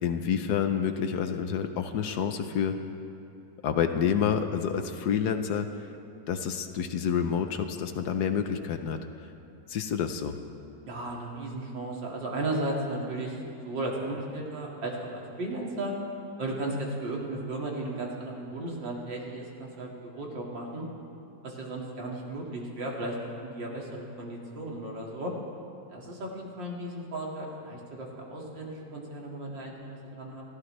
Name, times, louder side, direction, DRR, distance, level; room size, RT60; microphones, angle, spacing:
voice 1, 0.0-2.7 3.6-5.7 6.3-9.0 9.7-10.4, left 7 dB, 70° left, 8 dB, 1.2 m, -28 dB
voice 2, 10.9-13.4 13.6-15.9 16.4-20.9 21.4-23.2 23.4-25.3 25.9-30.4, right 2 dB, 80° right, -2 dB, 2.9 m, -35 dB
30.0 x 13.5 x 3.3 m, 2.7 s
omnidirectional pair, 2.0 m